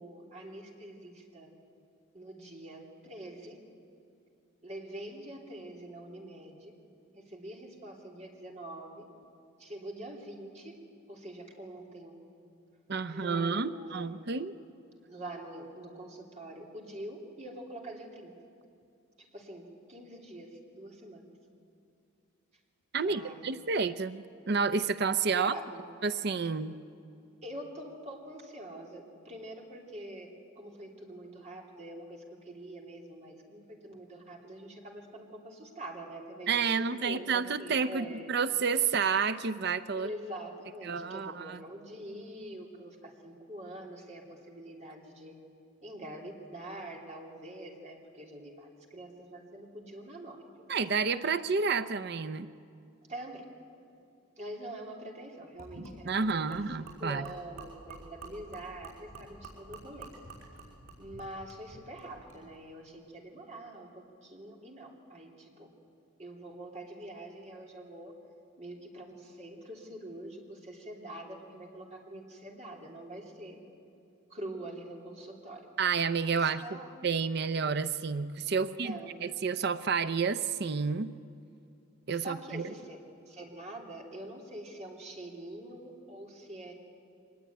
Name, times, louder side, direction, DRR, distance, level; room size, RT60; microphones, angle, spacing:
voice 1, 0.0-1.5 2.1-3.6 4.6-6.7 7.1-9.0 9.6-10.8 11.1-12.2 13.1-14.3 15.1-18.3 19.2-21.2 23.0-23.5 25.3-25.9 27.4-30.3 30.5-38.3 39.9-45.3 45.8-50.7 53.1-53.5 54.4-56.6 57.0-60.1 61.0-65.7 66.2-68.1 68.6-73.6 74.3-75.7 76.4-76.9 78.6-79.1 82.1-83.0 83.3-86.7, right 1 dB, 35° right, 0 dB, 3.1 m, -45 dB
voice 2, 12.9-14.5 22.9-25.5 26.0-26.8 36.5-40.1 40.8-41.6 50.7-52.5 56.0-57.2 75.8-78.9 79.2-81.1 82.1-82.7, right 5 dB, 50° right, 12 dB, 0.6 m, -30 dB
Gurgling / Liquid, 55.6-62.4, right 2 dB, 85° right, 6.0 m, -49 dB
24.0 x 20.0 x 9.4 m, 2.6 s
head